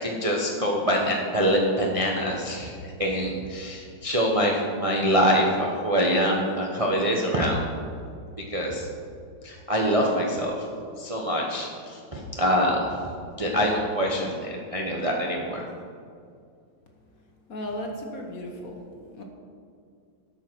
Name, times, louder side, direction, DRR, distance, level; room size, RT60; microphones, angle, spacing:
voice 1, 0.0-2.7 3.0-7.6 8.4-8.9 9.4-10.6 11.0-12.9 13.4-15.6, equal, 30° right, -1 dB, 0.7 m, -25 dB
voice 2, 17.5-19.2, left 1 dB, 50° left, 2 dB, 1.5 m, -36 dB
13.0 x 5.6 x 6.1 m, 2.4 s
omnidirectional pair, 2.0 m